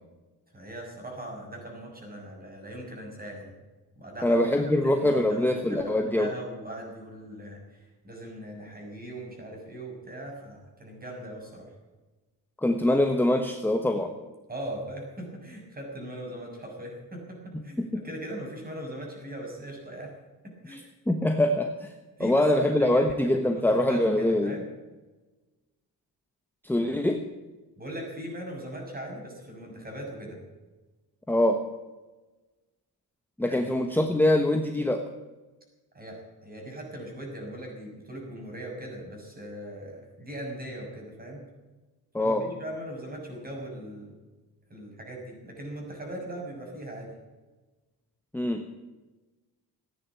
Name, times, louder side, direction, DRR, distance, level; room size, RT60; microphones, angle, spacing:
voice 1, 0.5-3.5 3.9-4.4 4.8-11.7 14.5-20.1 20.4-20.8 22.2-24.7 27.8-30.4 33.5-33.7 35.9-41.4 42.2-44.2 44.7-47.1, right 1 dB, 25° right, 0 dB, 6.5 m, -40 dB
voice 2, 4.2-6.3 12.6-14.1 17.8-18.0 20.7-21.9 22.2-24.5 26.6-27.2 31.3-31.6 33.4-35.0 42.1-42.5 48.3-48.6, left 1 dB, 5° left, 4 dB, 1.2 m, -24 dB
16.0 x 10.0 x 8.3 m, 1.2 s
cardioid pair, 140°, 39 cm